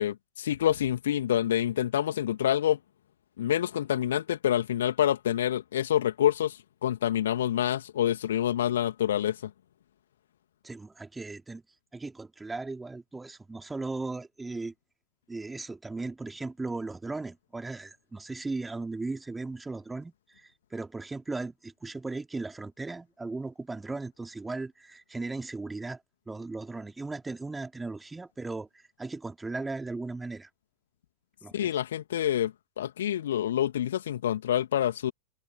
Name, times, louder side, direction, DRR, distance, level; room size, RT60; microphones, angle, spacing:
voice 1, 0.0-2.8 3.4-9.4 31.5-35.1, left 11 dB, 60° left, 2.4 m, -27 dB
voice 2, 10.6-11.6 11.9-14.7 15.3-26.0 26.3-30.5 31.4-31.8, right 3 dB, 10° right, 2.8 m, -37 dB
figure-of-eight pair, 90°, 0 cm